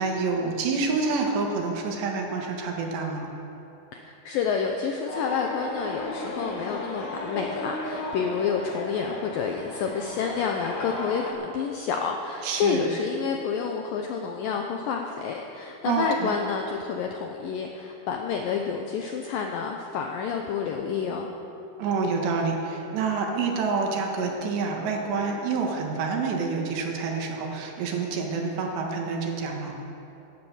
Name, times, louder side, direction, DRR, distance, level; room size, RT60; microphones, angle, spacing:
voice 1, 0.0-3.3 12.4-12.9 15.9-16.4 21.8-29.7, right 4 dB, 75° right, 1 dB, 3.6 m, -27 dB
voice 2, 3.9-21.3, left 6 dB, 85° left, 2 dB, 2.0 m, -29 dB
Roller Derby - San Francisco, 5.1-11.3, left 1 dB, 70° left, 4.6 m, -35 dB
17.0 x 10.5 x 7.2 m, 2.9 s
omnidirectional pair, 5.1 m